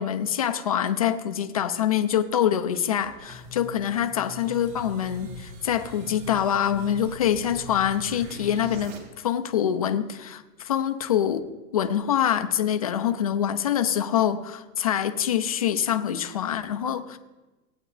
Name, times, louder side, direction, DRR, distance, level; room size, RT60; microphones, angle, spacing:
voice 1, 0.0-11.4 11.7-17.2, left 9 dB, 25° left, 8 dB, 0.3 m, -25 dB
sound 1, 2.7-9.0, equal, 45° right, 3.3 m, -42 dB
19.0 x 8.8 x 3.2 m, 1.1 s
hypercardioid pair, 155°, 46 cm